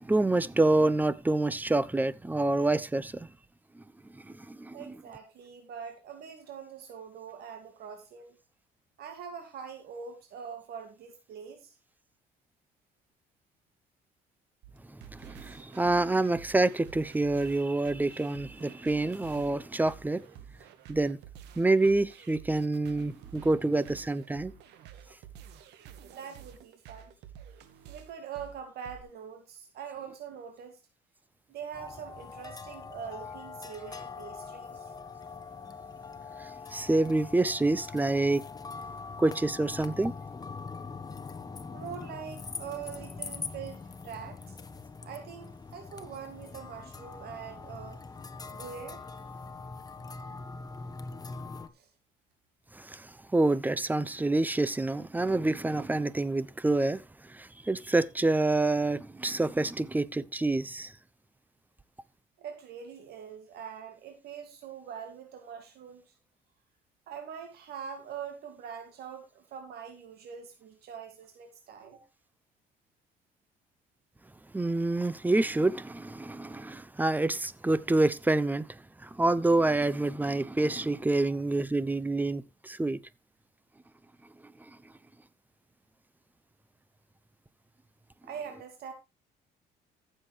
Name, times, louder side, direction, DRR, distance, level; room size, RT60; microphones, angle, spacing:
voice 1, 0.0-3.3 4.1-4.8 14.9-20.2 20.9-21.2 21.6-24.5 36.7-38.4 39.2-40.1 52.7-57.0 57.3-60.9 74.5-83.0, right 2 dB, 10° right, 0.7 m, -27 dB
voice 2, 4.7-8.3 9.0-11.8 26.0-27.1 27.9-30.8 31.5-34.8 41.7-44.6 45.0-48.0 48.5-49.0 51.7-51.9 62.4-66.1 67.1-72.0 88.2-88.9, right 7 dB, 70° right, 2.4 m, -43 dB
sound 1, 14.6-29.0, right 9 dB, 85° right, 1.7 m, -50 dB
sound 2, 31.7-51.7, left 4 dB, 20° left, 1.3 m, -43 dB
14.5 x 7.7 x 3.3 m
cardioid pair, 110°, 17 cm